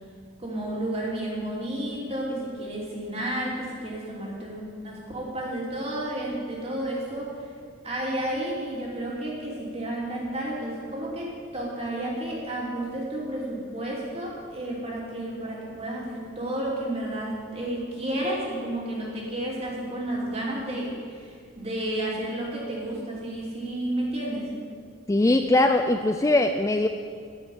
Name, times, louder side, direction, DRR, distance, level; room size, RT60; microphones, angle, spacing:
voice 1, 0.4-7.3 7.8-24.5, right 1 dB, 30° right, -4 dB, 2.8 m, -31 dB
voice 2, 25.1-26.9, left 2 dB, 15° left, 6 dB, 0.3 m, -21 dB
9.5 x 7.5 x 9.2 m, 2.1 s
head